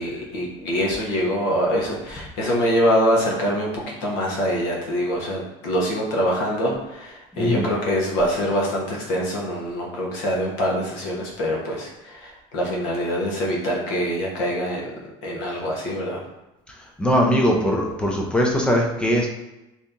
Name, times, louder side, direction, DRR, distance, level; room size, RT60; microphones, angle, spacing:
voice 1, 0.0-14.9 15.2-16.2, equal, 75° left, -2 dB, 1.0 m, -24 dB
voice 2, 7.3-7.6 17.0-19.3, equal, 5° left, 0 dB, 0.3 m, -20 dB
2.8 x 2.7 x 3.5 m, 0.94 s
cardioid pair, 175°, 13 cm